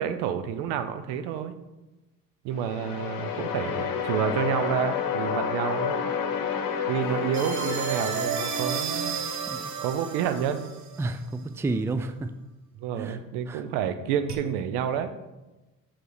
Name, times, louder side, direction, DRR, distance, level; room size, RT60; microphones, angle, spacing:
voice 1, 0.0-1.5 2.4-6.0 6.9-9.2 9.8-10.7 12.8-15.1, right 8 dB, 70° right, 10 dB, 0.7 m, -29 dB
sound 1, 2.5-9.5, left 7 dB, 55° left, 1.0 m, -30 dB
sound 2, 7.3-11.0 14.3-14.4, right 6 dB, 40° right, 0.8 m, -32 dB
voice 2, 11.0-12.3 13.0-13.2 13.5-13.6, right 2 dB, 5° right, 10 dB, 0.4 m, -30 dB
5.7 x 5.4 x 4.0 m, 1.1 s
hypercardioid pair, 55°, 41 cm